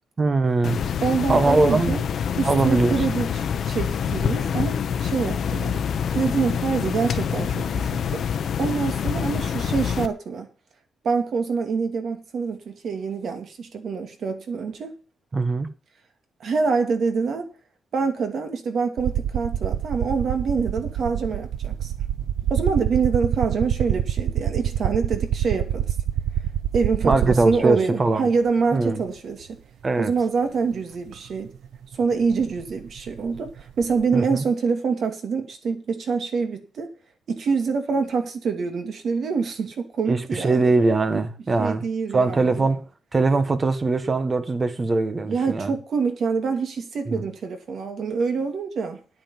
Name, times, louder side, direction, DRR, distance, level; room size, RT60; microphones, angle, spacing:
voice 1, 0.2-0.8 1.3-2.0 2.4-3.0 9.1-9.3 15.3-15.7 27.0-28.3 28.7-29.0 29.8-30.1 34.1-34.4 40.1-41.8 42.1-42.9 43.1-45.7 47.1-47.2, right 3 dB, 25° right, 1.3 m, -21 dB
sound 1, 0.6-10.1, left 7 dB, 55° left, 1.2 m, -26 dB
voice 2, 1.0-2.0 2.4-5.8 6.1-8.2 8.6-10.5 11.0-15.0 16.4-17.5 17.9-21.9 22.5-25.9 26.7-29.5 30.0-31.5 31.9-36.9 37.3-40.7 41.1-41.2 41.6-42.7 45.3-49.0, right 5 dB, 50° right, 2.5 m, -26 dB
sound 2, 19.0-27.7 28.9-29.0 31.1-31.2 31.5-34.0, right 10 dB, 85° right, 0.7 m, -26 dB
9.8 x 9.3 x 7.2 m
cardioid pair, 155°, 0 cm